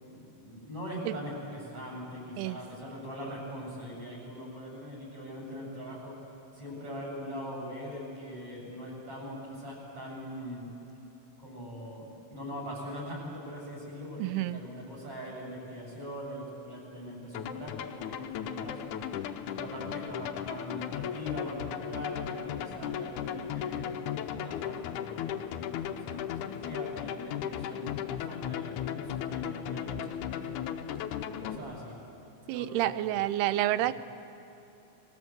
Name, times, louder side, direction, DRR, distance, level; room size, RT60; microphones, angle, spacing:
voice 1, 0.0-6.2 6.5-10.7 11.4-12.0 12.3-18.9 19.4-30.6 31.3-32.0 32.4-33.2 33.8-33.9, equal, 35° right, -1 dB, 8.3 m, -42 dB
voice 2, 14.2-14.6 32.5-33.9, right 14 dB, 80° right, 15 dB, 2.7 m, -29 dB
sound 1, 17.3-31.6, left 9 dB, 85° left, 1.7 m, -36 dB
30.0 x 21.0 x 8.1 m, 3.0 s
omnidirectional pair, 4.7 m